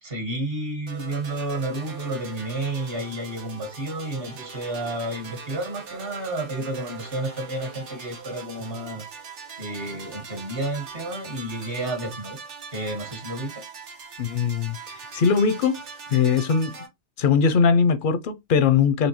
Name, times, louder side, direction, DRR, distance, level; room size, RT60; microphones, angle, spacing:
voice 1, 0.0-9.1 9.6-12.4 12.7-13.6, right 1 dB, 55° right, 1.7 m, -31 dB
sound 1, 0.9-16.9, right 5 dB, 80° right, 1.3 m, -41 dB
voice 2, 14.2-14.8 15.1-15.8 16.1-16.8 17.2-19.1, left 6 dB, 60° left, 0.6 m, -20 dB
4.3 x 3.3 x 2.9 m
omnidirectional pair, 1.2 m